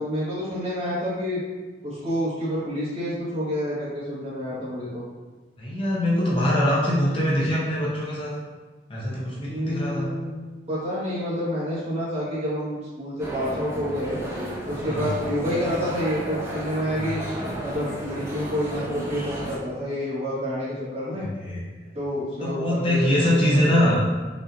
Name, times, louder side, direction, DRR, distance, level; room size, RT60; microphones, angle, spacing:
voice 1, 0.0-1.4 1.8-5.0 9.5-10.3 10.7-14.2 14.7-17.2 17.6-21.3 21.9-24.0, equal, 35° right, -9 dB, 1.4 m, -28 dB
voice 2, 5.6-8.3 8.9-10.1 14.9-15.1 16.9-17.1 21.2-21.6 22.4-24.0, equal, 30° left, -6 dB, 0.6 m, -23 dB
sound 1, 13.2-19.6, right 1 dB, 15° right, 0.5 m, -33 dB
5.1 x 2.7 x 2.6 m, 1.3 s
head